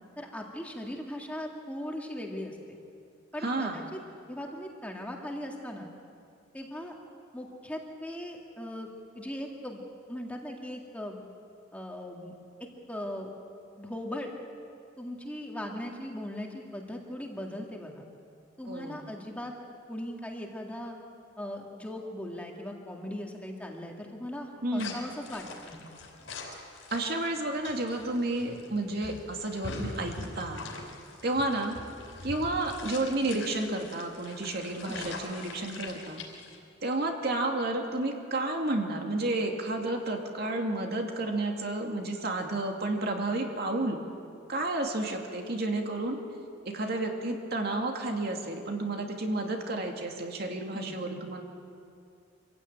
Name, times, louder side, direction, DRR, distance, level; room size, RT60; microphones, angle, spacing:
voice 1, 0.2-2.8 3.3-3.8 4.3-5.9 6.5-6.9 7.3-8.9 9.1-9.8 10.1-11.2 11.7-12.4 12.9-13.3 13.8-14.3 15.0-18.0 18.6-19.5 19.9-21.0 21.4-25.9 34.9-35.1 50.7-51.2, left 1 dB, 5° left, 0 dB, 2.1 m, -39 dB
voice 2, 3.4-3.8 18.7-19.1 24.6-24.9 26.9-30.7 31.2-31.7 32.2-36.2 36.8-44.0 44.5-46.2 46.6-51.4, right 2 dB, 55° right, 2 dB, 2.5 m, -31 dB
sound 1, 24.8-36.6, left 2 dB, 75° left, 4.7 m, -43 dB
26.0 x 15.5 x 9.1 m, 2.4 s
head